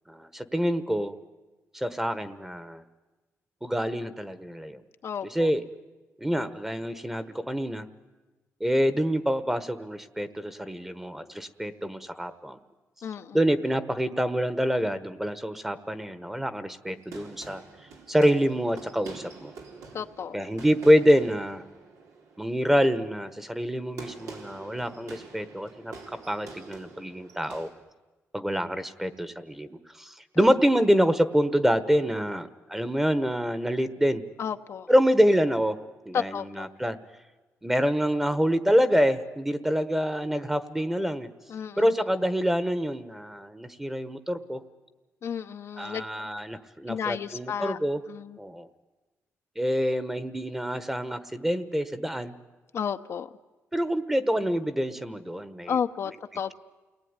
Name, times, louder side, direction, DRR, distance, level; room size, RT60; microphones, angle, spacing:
voice 1, 0.1-1.2 1.7-2.8 3.6-4.8 5.2-5.6 6.2-7.8 8.6-12.6 13.3-17.6 18.1-19.5 20.3-21.6 22.4-25.9 26.3-27.7 28.3-29.7 30.0-34.2 34.9-35.8 36.1-37.0 37.6-41.3 41.8-44.6 45.8-48.0 48.4-48.7 49.6-52.3 53.7-55.8, equal, 5° right, 12 dB, 1.3 m, -26 dB
voice 2, 5.0-5.5 13.0-13.4 19.9-20.4 30.4-30.5 34.4-34.9 36.1-36.7 41.5-41.9 45.2-46.1 46.9-47.8 48.1-48.4 52.7-53.3 55.7-56.5, left 7 dB, 55° left, 7 dB, 0.9 m, -32 dB
sound 1, 16.8-27.7, right 4 dB, 90° right, 3.8 m, -46 dB
29.0 x 19.5 x 9.8 m, 1.2 s
cardioid pair, 125°, 5 cm